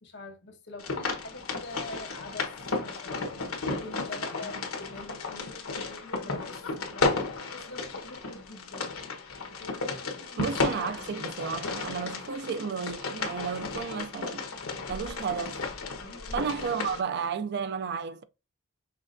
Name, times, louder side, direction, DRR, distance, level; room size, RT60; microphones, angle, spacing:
voice 1, 0.0-2.5 2.8-5.2 6.2-9.0 16.3-16.5, left 2 dB, 55° left, 1.3 m, -45 dB
sound 1, 0.8-17.0, left 3 dB, 80° left, 1.1 m, -34 dB
voice 2, 10.4-14.5 14.9-15.6 16.3-18.2, right 6 dB, 50° right, 0.4 m, -33 dB
5.8 x 3.3 x 2.6 m
head